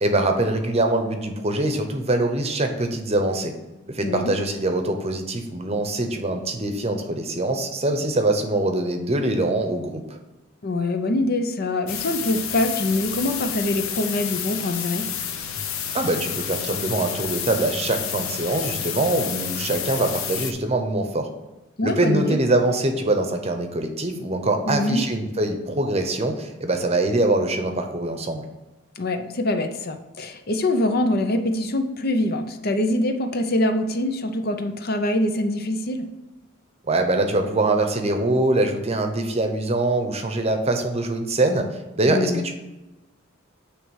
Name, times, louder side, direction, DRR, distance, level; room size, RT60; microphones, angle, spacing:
voice 1, 0.0-3.5 3.9-10.2 15.9-21.3 21.8-28.4 36.8-41.7 42.0-42.5, right 2 dB, 30° right, 6 dB, 0.8 m, -23 dB
voice 2, 10.6-15.1 21.8-22.4 24.7-25.0 29.0-36.1 42.1-42.4, left 1 dB, 50° left, 7 dB, 0.7 m, -24 dB
sound 1, 11.9-20.5, left 8 dB, 85° left, 0.8 m, -30 dB
9.3 x 3.3 x 6.4 m, 1.0 s
head